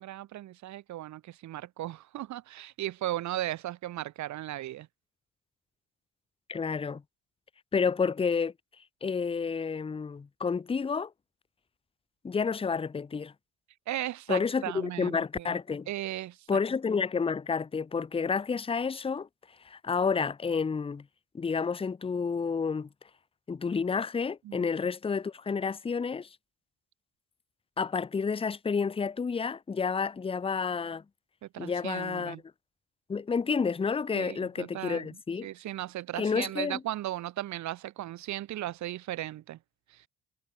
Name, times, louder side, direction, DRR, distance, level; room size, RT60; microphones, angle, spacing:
voice 1, 0.0-4.9 13.9-15.6 15.9-16.6 24.4-24.7 31.4-32.4 34.1-39.6 39.9-40.0, right 14 dB, 70° right, 0.8 m, -36 dB
voice 2, 6.5-7.0 7.7-8.5 9.0-11.1 12.2-13.3 14.3-15.9 16.5-19.3 19.6-21.0 21.3-22.9 23.5-26.3 27.8-31.0 31.6-32.4 33.1-35.5 36.2-36.8, left 5 dB, 20° left, 0.6 m, -30 dB
cardioid pair, 90°, 30 cm